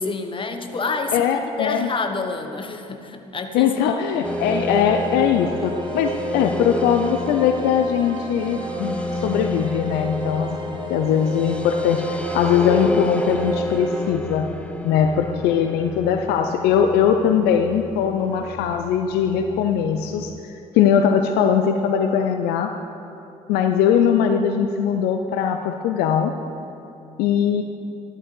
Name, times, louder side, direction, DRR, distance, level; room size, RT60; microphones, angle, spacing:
voice 1, 0.0-1.3 1.6-4.1, left 4 dB, 30° left, 6 dB, 1.1 m, -28 dB
voice 2, 1.1-1.9 3.5-12.0 12.3-14.5 14.8-20.4 20.7-22.7 23.5-26.3 27.2-27.6, left 8 dB, 65° left, 6 dB, 0.5 m, -20 dB
sound 1, 4.0-14.1, right 1 dB, 25° right, 1.3 m, -31 dB
sound 2, 4.2-20.4, left 2 dB, 5° left, 0.6 m, -32 dB
14.0 x 12.0 x 3.3 m, 2.7 s
hypercardioid pair, 50°, 18 cm